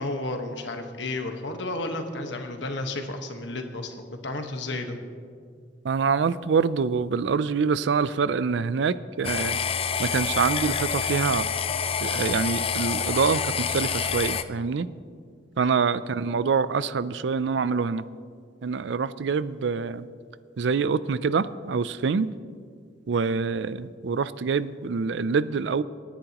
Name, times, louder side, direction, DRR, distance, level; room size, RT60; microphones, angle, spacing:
voice 1, 0.0-5.0 15.6-15.8 23.1-23.3, left 2 dB, 70° left, 5 dB, 1.4 m, -32 dB
voice 2, 5.8-9.6 10.0-11.5 12.0-14.9 15.6-18.0 18.6-20.1 20.6-22.3 23.1-25.8, right 5 dB, 70° right, 16 dB, 0.4 m, -25 dB
sound 1, 9.2-14.4, left 6 dB, 30° left, 0.4 m, -27 dB
26.5 x 10.0 x 3.0 m, 2.1 s
head